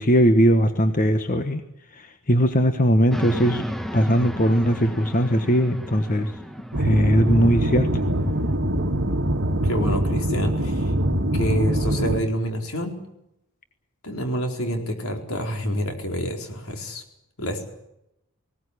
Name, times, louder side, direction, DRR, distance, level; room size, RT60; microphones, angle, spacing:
voice 1, 0.0-1.6 1.9-3.6 3.9-6.3 6.8-7.9, equal, 40° left, 7 dB, 1.4 m, -19 dB
sound 1, 3.1-8.5, equal, ahead, 1.2 m, -34 dB
sound 2, 6.7-12.2, right 1 dB, 55° right, 2.0 m, -23 dB
voice 2, 9.6-10.9 11.3-13.0 14.0-17.0 17.4-17.6, equal, 75° left, 3 dB, 4.5 m, -27 dB
19.5 x 18.0 x 9.9 m, 0.84 s
head